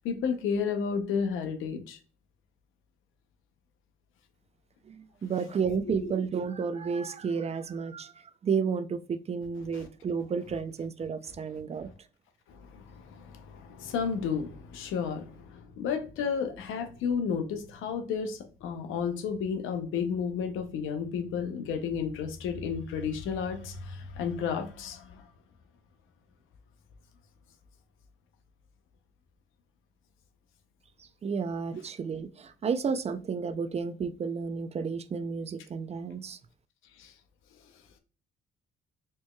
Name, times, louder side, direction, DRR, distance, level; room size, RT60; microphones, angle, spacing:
voice 1, 0.0-2.0 5.7-6.1 9.7-9.9 11.8-11.9 12.5-25.3 36.9-37.1, left 6 dB, 85° left, 7 dB, 0.6 m, -32 dB
voice 2, 4.9-8.1 8.4-11.9 31.2-36.4, right 6 dB, 30° right, 12 dB, 0.4 m, -32 dB
4.4 x 3.0 x 2.2 m, 0.38 s
cardioid pair, 90°, 20 cm